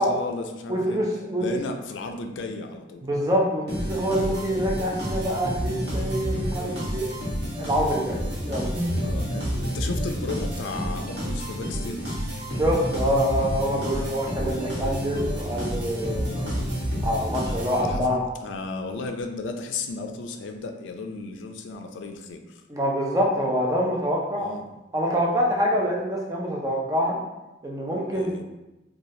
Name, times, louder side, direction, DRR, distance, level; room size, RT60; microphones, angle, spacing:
voice 1, 0.0-1.0 1.4-3.0 5.1-5.3 6.5-6.9 9.0-12.2 13.9-14.1 16.3-16.7 17.8-22.6 24.4-24.7 25.6-25.7 28.1-28.4, left 3 dB, 85° left, 5 dB, 0.4 m, -35 dB
voice 2, 0.7-1.4 3.0-7.0 7.6-8.7 12.5-16.4 17.0-18.3 22.7-24.5 24.9-27.2 27.6-28.3, equal, 20° right, -3 dB, 0.4 m, -25 dB
sound 1, 3.7-18.2, equal, 60° right, 1.1 m, -29 dB
3.1 x 2.3 x 2.7 m, 1.0 s
head